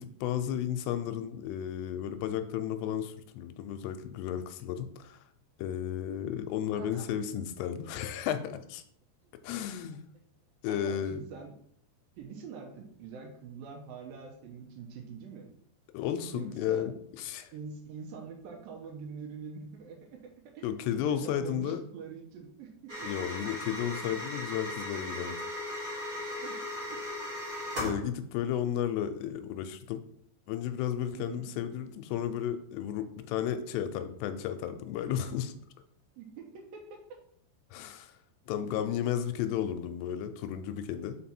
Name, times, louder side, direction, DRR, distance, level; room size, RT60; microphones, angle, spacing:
voice 1, 0.0-5.2 5.6-8.8 9.4-10.0 10.6-11.2 15.9-17.5 20.6-21.8 23.0-25.4 27.8-30.0 30.5-35.5 37.7-38.1 38.5-41.2, left 10 dB, 85° left, 9 dB, 2.6 m, -33 dB
voice 2, 10.7-11.6 12.2-15.5 16.3-16.9 17.5-20.7 21.0-23.3 26.4-27.0 31.1-31.5 36.2-37.0, right 5 dB, 75° right, 2 dB, 2.2 m, -45 dB
sound 1, 22.9-28.0, left 1 dB, 55° right, 0.9 m, -37 dB
5.7 x 4.7 x 4.3 m, 0.68 s
omnidirectional pair, 5.0 m